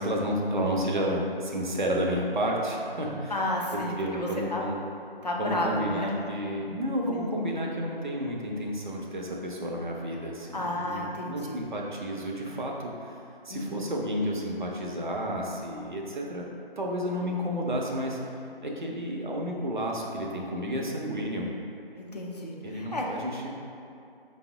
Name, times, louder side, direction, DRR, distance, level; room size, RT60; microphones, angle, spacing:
voice 1, 0.0-3.3 3.7-4.8 5.4-16.4 16.8-21.5 22.6-23.6, equal, 50° right, -1 dB, 0.6 m, -31 dB
voice 2, 3.3-4.7 5.2-6.3 7.1-7.3 10.5-11.7 13.5-13.9 22.0-23.1, left 1 dB, 45° left, -3 dB, 0.5 m, -32 dB
5.1 x 2.0 x 3.6 m, 2.6 s
figure-of-eight pair, 155°, 30 cm